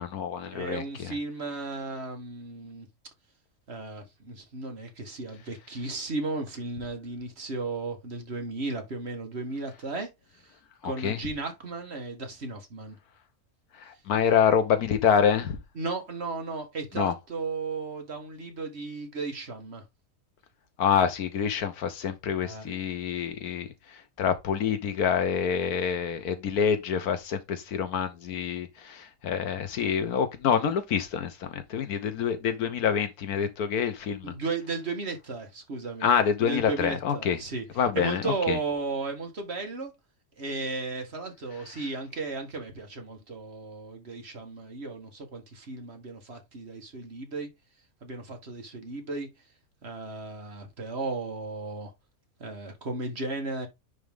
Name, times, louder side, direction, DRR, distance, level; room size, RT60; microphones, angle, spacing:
voice 1, 0.0-1.1 10.8-11.2 13.7-15.6 17.0-17.1 20.8-34.3 36.0-37.4 37.8-38.6, left 7 dB, 90° left, 1.5 m, -27 dB
voice 2, 0.5-2.9 3.7-10.1 10.3-10.6 10.8-13.0 15.7-19.8 22.4-22.7 34.2-36.1 36.4-37.6 37.9-39.9 40.4-47.5 48.0-49.3 49.8-51.9 52.4-53.7, right 3 dB, 45° right, 1.7 m, -35 dB
10.0 x 3.7 x 3.6 m
omnidirectional pair, 1.6 m